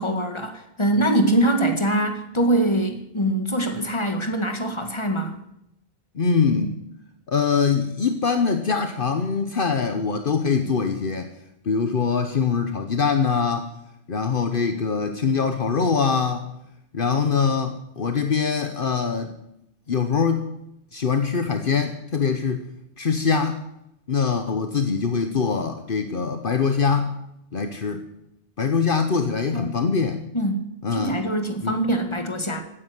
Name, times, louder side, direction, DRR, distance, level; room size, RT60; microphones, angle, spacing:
voice 1, 0.0-5.3 29.5-29.8 30.3-32.6, right 1 dB, 30° left, 5 dB, 1.9 m, -23 dB
voice 2, 6.1-6.8 7.3-11.3 11.6-13.7 14.1-16.5 16.9-19.3 19.9-20.5 20.9-22.7 23.0-23.6 24.1-27.2 27.5-28.0 28.6-30.2 30.8-31.2 31.6-31.8, left 5 dB, 60° left, 7 dB, 1.2 m, -23 dB
16.0 x 9.9 x 8.1 m, 0.81 s
omnidirectional pair, 1.0 m